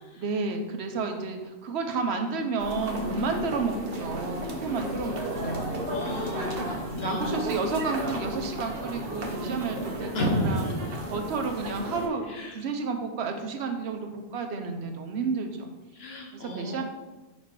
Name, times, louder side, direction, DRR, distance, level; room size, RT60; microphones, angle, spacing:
voice 1, 0.2-5.8 6.5-10.7 11.1-12.3 12.5-15.7 16.3-16.8, right 4 dB, 85° right, 5 dB, 1.0 m, -31 dB
sound 1, 2.6-12.1, equal, 60° right, 1.1 m, -33 dB
voice 2, 5.9-7.4 10.1-10.7 12.3-12.6 13.8-14.0 15.9-16.8, left 1 dB, 70° left, 0 dB, 1.3 m, -32 dB
5.2 x 4.1 x 4.6 m, 1.1 s
omnidirectional pair, 1.1 m